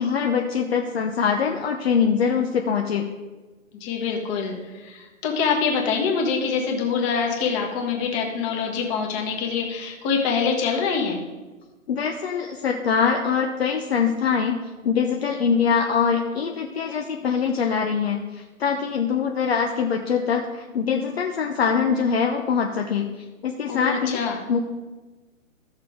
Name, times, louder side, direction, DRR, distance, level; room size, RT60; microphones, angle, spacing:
voice 1, 0.0-3.0 11.9-14.6 14.8-24.2 24.5-24.6, left 6 dB, 50° left, 2 dB, 0.8 m, -23 dB
voice 2, 3.8-11.2 23.7-24.4, left 5 dB, 20° left, 1 dB, 1.5 m, -25 dB
13.5 x 6.7 x 3.6 m, 1.2 s
hypercardioid pair, 140°, 41 cm